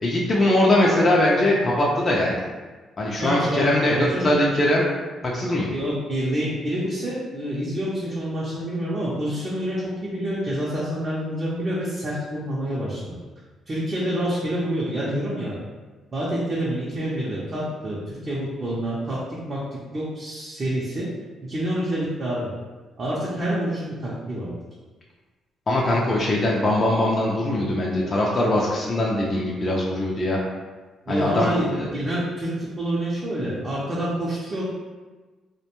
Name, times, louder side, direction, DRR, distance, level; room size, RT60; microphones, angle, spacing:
voice 1, 0.0-2.4 3.0-4.9 5.2-5.7 25.7-30.4 31.1-31.5 31.8-31.9, left 1 dB, 35° left, -4 dB, 0.4 m, -21 dB
voice 2, 3.2-4.3 5.7-13.2 13.7-15.6 16.1-19.2 19.5-19.6 19.9-21.1 21.5-22.5 23.0-24.5 31.1-34.6, right 1 dB, 35° right, -7 dB, 0.6 m, -27 dB
2.5 x 2.1 x 2.9 m, 1.3 s
cardioid pair, 90°, 0 cm